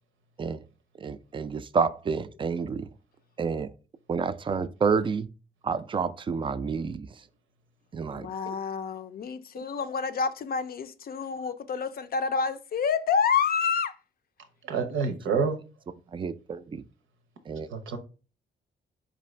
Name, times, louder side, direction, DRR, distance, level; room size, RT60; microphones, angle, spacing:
voice 1, 1.0-2.9 3.4-3.7 4.1-5.3 5.6-7.1 7.9-8.3 15.3-15.4 16.1-16.8 17.5-17.7, right 5 dB, 25° right, 0.3 m, -29 dB
voice 2, 8.1-13.9, left 6 dB, 50° left, 0.5 m, -28 dB
voice 3, 14.7-15.6 17.7-18.0, right 5 dB, 85° right, 0.7 m, -27 dB
4.6 x 2.5 x 3.1 m
cardioid pair, 65°, 20 cm